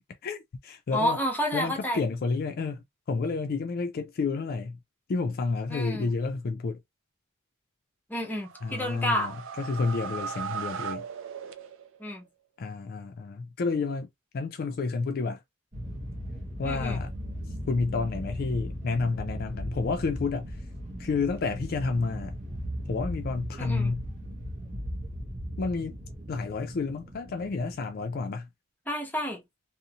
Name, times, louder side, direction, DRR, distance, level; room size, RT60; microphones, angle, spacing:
voice 1, 0.2-1.2 1.5-4.8 5.1-6.8 8.6-11.1 12.6-14.1 14.3-15.4 16.6-17.1 17.7-20.6 21.0-22.4 22.9-24.1 25.6-26.0 26.3-28.5, left 4 dB, 45° left, 0.4 m, -30 dB
voice 2, 0.9-2.0 5.7-6.1 8.1-9.3 12.0-12.2 16.6-17.0 23.6-23.9 28.9-29.4, equal, 10° left, 0.7 m, -30 dB
sound 1, 8.3-12.1, right 7 dB, 65° right, 0.4 m, -38 dB
sound 2, 15.7-28.1, equal, 35° right, 0.7 m, -37 dB
2.6 x 2.0 x 2.7 m
head